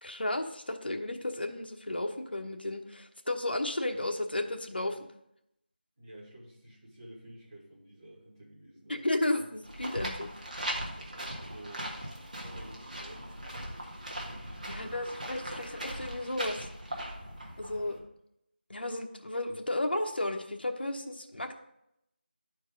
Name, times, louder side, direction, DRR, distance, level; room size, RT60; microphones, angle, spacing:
voice 1, 0.0-5.0 8.9-10.3 14.7-16.6 17.6-18.0 18.7-21.5, left 1 dB, 65° left, 4 dB, 1.0 m, -33 dB
voice 2, 6.0-9.5 10.9-11.9 12.4-13.4 14.6-15.0, right 1 dB, 20° right, -8 dB, 2.0 m, -51 dB
sound 1, 9.6-18.0, right 1 dB, 45° right, 1.6 m, -39 dB
11.5 x 4.6 x 3.7 m, 0.81 s
figure-of-eight pair, 175°, 6 cm